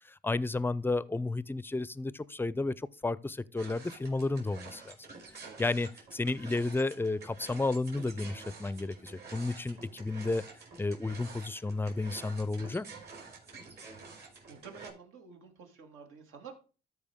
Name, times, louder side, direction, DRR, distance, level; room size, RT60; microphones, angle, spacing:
voice 1, 0.0-5.0 5.6-10.5 10.8-12.9, left 2 dB, 10° left, 0.4 m, -32 dB
sound 1, 3.6-14.9, right 4 dB, 55° right, 3.8 m, -49 dB
voice 2, 14.5-16.5, right 6 dB, 85° right, 2.3 m, -50 dB
13.5 x 4.8 x 3.6 m
cardioid pair, 90°, 20 cm